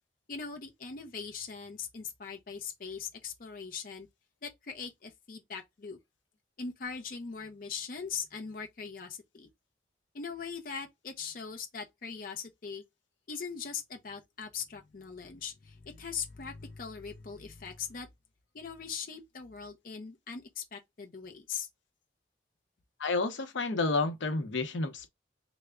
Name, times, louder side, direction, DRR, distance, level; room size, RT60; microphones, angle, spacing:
voice 1, 0.3-4.1 4.4-6.0 6.6-9.5 10.1-12.8 13.3-18.1 18.5-21.7, left 6 dB, 50° left, 0.5 m, -40 dB
voice 2, 23.0-25.1, left 3 dB, 85° left, 0.7 m, -30 dB
3.3 x 2.1 x 3.5 m
head